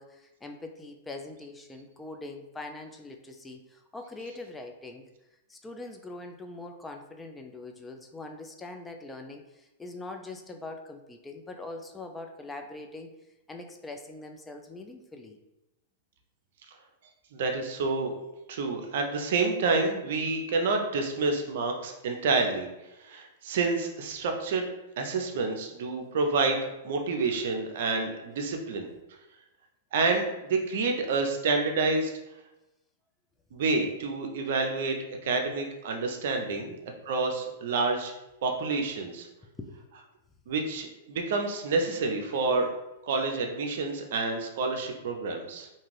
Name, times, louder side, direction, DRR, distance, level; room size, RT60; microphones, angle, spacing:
voice 1, 0.0-5.0 5.5-13.1 13.5-15.4 36.7-36.8 39.6-39.8, left 2 dB, 10° left, 4 dB, 0.3 m, -42 dB
voice 2, 17.3-18.1 18.5-22.7 23.0-24.6 25.0-28.9 29.9-32.1 33.5-35.0 35.2-36.8 37.1-38.1 38.4-39.3 40.5-42.7 43.0-45.7, right 3 dB, 65° right, 3 dB, 0.5 m, -28 dB
2.6 x 2.4 x 3.2 m, 0.95 s
hypercardioid pair, 110°, 0 cm